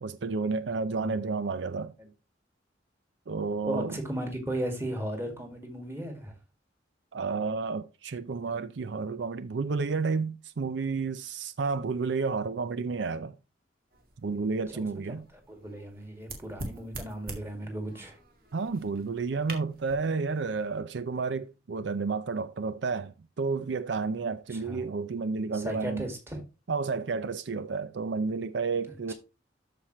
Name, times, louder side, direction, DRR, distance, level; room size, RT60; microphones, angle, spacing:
voice 1, 0.0-1.9 3.3-4.0 7.1-13.3 14.2-15.2 18.5-26.1 26.7-29.1, right 4 dB, 70° right, 0.5 m, -31 dB
voice 2, 3.6-6.4 14.7-18.2 24.5-24.8 25.5-26.4 28.9-29.1, right 1 dB, 15° right, 2.0 m, -36 dB
sound 1, 13.9-20.8, right 2 dB, 50° right, 2.1 m, -46 dB
13.0 x 5.0 x 3.1 m
head